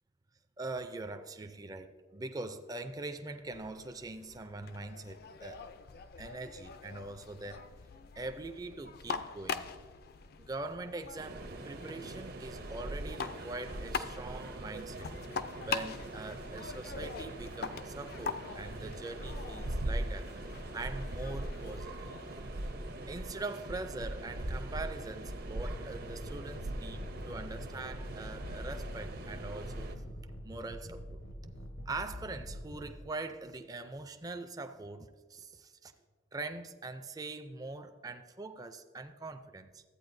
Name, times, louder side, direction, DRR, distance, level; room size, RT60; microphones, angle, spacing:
voice 1, 0.6-5.6 6.2-7.6 8.2-9.7 10.4-15.1 15.6-20.3 20.7-22.2 23.1-29.9 30.4-31.2 31.9-35.9 36.3-39.8, right 2 dB, 20° right, 8 dB, 0.4 m, -42 dB
sound 1, 3.5-22.7, left 5 dB, 50° left, 0.4 m, -44 dB
sound 2, 11.2-29.9, right 1 dB, 50° right, 0.7 m, -41 dB
sound 3, 25.5-32.9, equal, 80° left, 1.1 m, -45 dB
13.5 x 8.8 x 2.6 m, 1.5 s
head